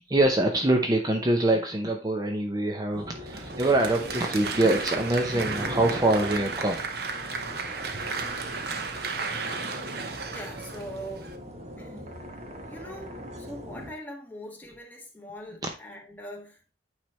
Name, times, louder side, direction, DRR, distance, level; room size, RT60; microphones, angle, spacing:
voice 1, 0.1-6.8 8.3-8.9, right 2 dB, 20° right, 0.7 m, -25 dB
sound 1, 2.9-13.9, equal, 40° right, 1.2 m, -40 dB
Applause, 3.3-11.4, right 4 dB, 60° right, 0.9 m, -34 dB
voice 2, 10.3-11.3 11.8-12.2 12.7-16.7, equal, 10° left, 1.5 m, -42 dB
9.1 x 3.3 x 4.2 m
head